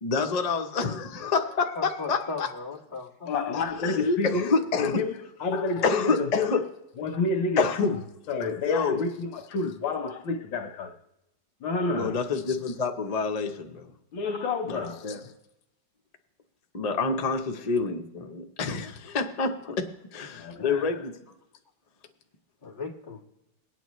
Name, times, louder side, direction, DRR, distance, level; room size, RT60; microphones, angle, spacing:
voice 1, 0.0-2.5 3.8-5.0 5.8-6.6 7.6-7.9 8.6-9.0 11.9-13.9 14.7-15.2 16.7-21.1, left 4 dB, 45° left, 0.5 m, -27 dB
voice 2, 1.8-3.3 22.6-23.2, left 4 dB, 25° left, 2.0 m, -37 dB
voice 3, 3.2-4.5 4.8-5.1 5.4-6.6 7.0-8.0 8.3-11.0 11.6-12.2 14.1-15.1 20.4-20.9, left 3 dB, 90° left, 1.7 m, -29 dB
22.5 x 9.0 x 3.1 m
omnidirectional pair, 2.0 m